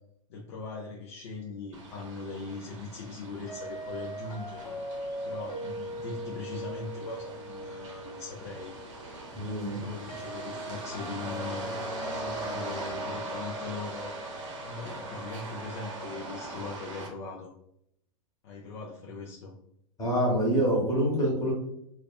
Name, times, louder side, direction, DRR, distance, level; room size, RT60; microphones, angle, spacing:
voice 1, 0.3-4.7 5.0-8.7 9.7-11.8 12.1-14.2 14.6-17.5 18.4-19.5, left 3 dB, 50° left, -1 dB, 0.4 m, -40 dB
sound 1, 1.7-17.1, right 2 dB, 60° right, 0.7 m, -41 dB
sound 2, 3.5-16.3, right 1 dB, 90° left, 1.0 m, -41 dB
voice 2, 9.3-9.8 20.0-21.5, equal, 20° left, -2 dB, 1.0 m, -26 dB
2.4 x 2.3 x 2.2 m, 0.74 s
figure-of-eight pair, 100°, 18 cm